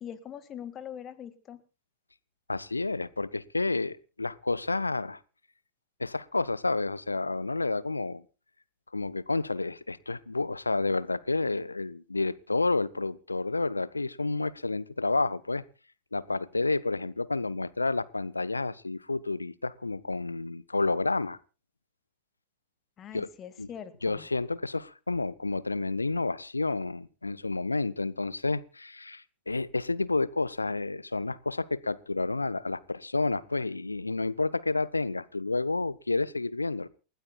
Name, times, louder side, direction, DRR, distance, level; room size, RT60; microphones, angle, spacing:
voice 1, 0.0-1.6 23.0-24.3, left 9 dB, 30° left, 12 dB, 1.9 m, -42 dB
voice 2, 2.5-5.2 6.0-8.2 8.9-15.6 16.1-21.4 23.1-23.3 23.6-23.7 24.0-36.9, left 3 dB, 80° left, 18 dB, 0.6 m, -30 dB
29.0 x 12.5 x 2.3 m, 0.32 s
figure-of-eight pair, 90°, 0 cm